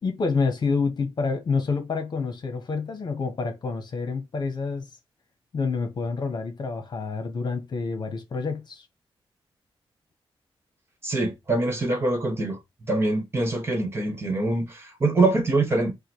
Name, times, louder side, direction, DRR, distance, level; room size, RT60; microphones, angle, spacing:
voice 1, 0.0-4.9 5.5-8.8, left 4 dB, 50° left, 1.1 m, -28 dB
voice 2, 11.0-12.6 12.9-15.9, right 2 dB, 25° right, 1.4 m, -24 dB
5.0 x 2.3 x 4.6 m
wide cardioid pair, 165°, 9 cm